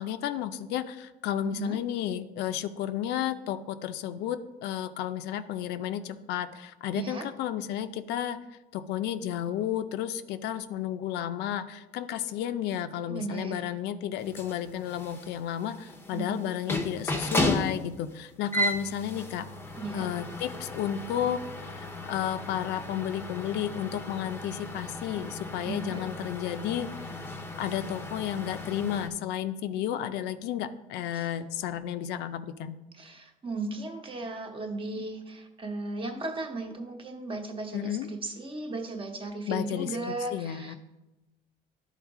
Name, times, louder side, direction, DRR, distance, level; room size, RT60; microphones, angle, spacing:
voice 1, 0.0-8.4 8.7-19.5 19.9-27.1 27.6-32.8 37.7-38.1 39.5-40.8, left 10 dB, 85° left, 10 dB, 0.5 m, -32 dB
voice 2, 1.4-1.8 6.9-7.3 13.1-13.7 16.1-16.4 19.8-20.1 25.6-26.0 31.1-31.3 32.9-40.8, right 2 dB, 30° right, 4 dB, 1.0 m, -36 dB
sound 1, 14.2-29.1, left 1 dB, 15° left, 0.7 m, -35 dB
11.0 x 4.0 x 3.6 m, 1.0 s
cardioid pair, 110°, 17 cm